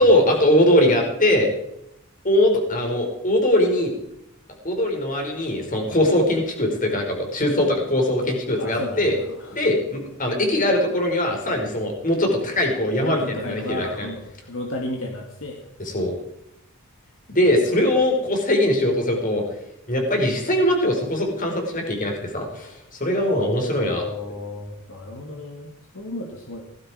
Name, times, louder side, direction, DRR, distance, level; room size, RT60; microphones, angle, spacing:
voice 1, 0.0-1.5 2.2-3.9 4.6-9.2 9.5-14.1 15.8-16.1 17.3-19.5 19.9-24.0, left 1 dB, 40° left, 2 dB, 4.7 m, -21 dB
voice 2, 8.6-9.6 13.0-15.7 23.7-26.6, left 1 dB, 65° left, 1 dB, 2.3 m, -33 dB
17.5 x 15.0 x 5.0 m, 0.79 s
head